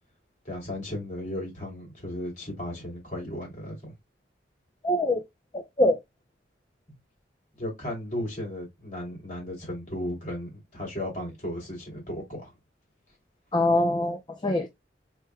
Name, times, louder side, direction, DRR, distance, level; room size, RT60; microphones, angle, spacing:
voice 1, 0.4-3.9 7.6-12.5, left 1 dB, 40° left, 3.0 m, -35 dB
voice 2, 4.8-5.2 5.5-6.0 13.5-14.7, left 1 dB, 25° left, 0.5 m, -24 dB
4.7 x 4.4 x 2.3 m
head